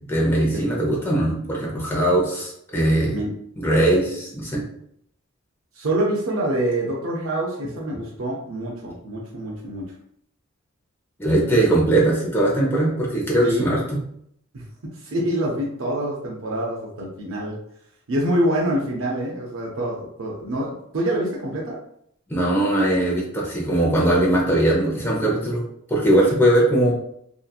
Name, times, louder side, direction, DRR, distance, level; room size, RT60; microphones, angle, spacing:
voice 1, 0.1-3.2 3.6-4.6 11.2-13.8 22.3-25.6 25.9-26.9, right 1 dB, 10° left, -5 dB, 0.7 m, -20 dB
voice 2, 5.7-9.9 13.4-13.7 14.5-14.6 14.9-17.6 18.1-21.8, right 1 dB, 80° right, -3 dB, 0.5 m, -26 dB
2.7 x 2.4 x 2.3 m, 0.71 s
head